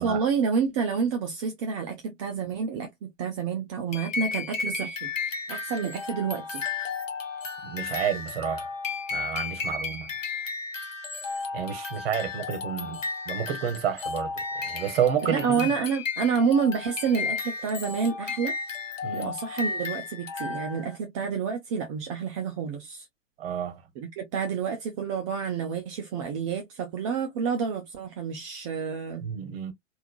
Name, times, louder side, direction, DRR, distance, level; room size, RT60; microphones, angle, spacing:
voice 1, 0.0-5.1 5.5-6.6 15.3-18.5 19.1-23.1 24.0-29.2, right 6 dB, 25° right, 0.5 m, -29 dB
sound 1, 3.9-21.0, left 5 dB, 75° left, 1.2 m, -33 dB
voice 2, 7.6-8.7 9.1-10.1 11.5-15.7 19.0-19.3 23.4-23.8 29.2-29.7, right 9 dB, 50° right, 1.0 m, -30 dB
3.5 x 2.6 x 2.2 m
figure-of-eight pair, 105°, 38 cm